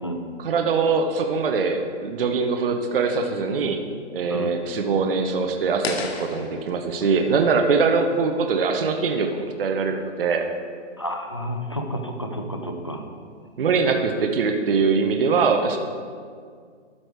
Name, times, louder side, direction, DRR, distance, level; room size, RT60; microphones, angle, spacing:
voice 1, 0.4-3.8 4.1-10.4 13.6-15.8, right 4 dB, 50° right, 4 dB, 0.8 m, -22 dB
sound 1, 5.8-8.9, left 4 dB, 60° left, 1.0 m, -35 dB
voice 2, 11.0-13.1, equal, 25° left, 5 dB, 0.4 m, -30 dB
12.5 x 5.0 x 4.6 m, 2.1 s
hypercardioid pair, 170°, 35 cm